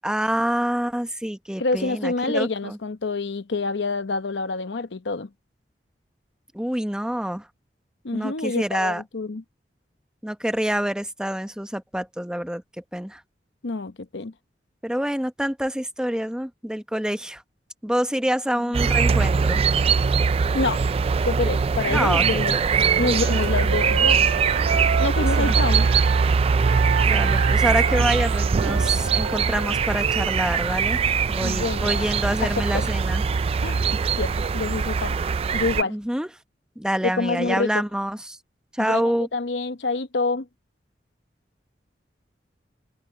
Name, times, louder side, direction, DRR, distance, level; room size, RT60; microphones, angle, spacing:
voice 1, 0.0-2.8 6.5-7.4 8.1-9.0 10.2-12.6 12.9-13.2 14.8-17.4 17.8-19.6 21.9-23.1 25.2-25.5 27.0-31.0 31.3-33.2 35.9-36.3 36.8-38.4 38.7-39.3, equal, 5° right, 0.9 m, -27 dB
voice 2, 1.6-5.3 8.0-9.4 13.6-14.3 20.5-20.8 21.2-22.6 23.0-24.3 25.0-25.9 31.4-32.1 32.4-32.9 33.6-35.2 35.5-36.0 37.0-37.8 38.8-40.5, left 3 dB, 90° left, 0.9 m, -27 dB
sound 1, 18.7-35.8, right 5 dB, 35° right, 0.3 m, -21 dB
Wind instrument woodwind instrument, 22.7-26.3 26.6-30.4, right 5 dB, 85° right, 0.6 m, -31 dB
head